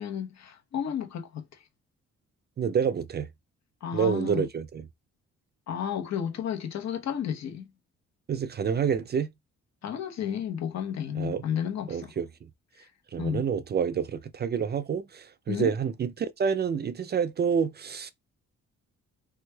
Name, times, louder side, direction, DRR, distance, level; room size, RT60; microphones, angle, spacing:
voice 1, 0.0-1.6 3.8-4.4 5.7-7.7 9.8-12.1 12.8-12.9 13.2-13.4 15.5-15.7, left 9 dB, 60° left, 1.0 m, -32 dB
voice 2, 2.6-3.3 3.9-4.9 8.3-9.3 11.2-11.4 11.9-12.5 13.1-18.1, right 7 dB, 35° right, 0.4 m, -28 dB
3.3 x 3.1 x 2.2 m
cardioid pair, 90°, 30 cm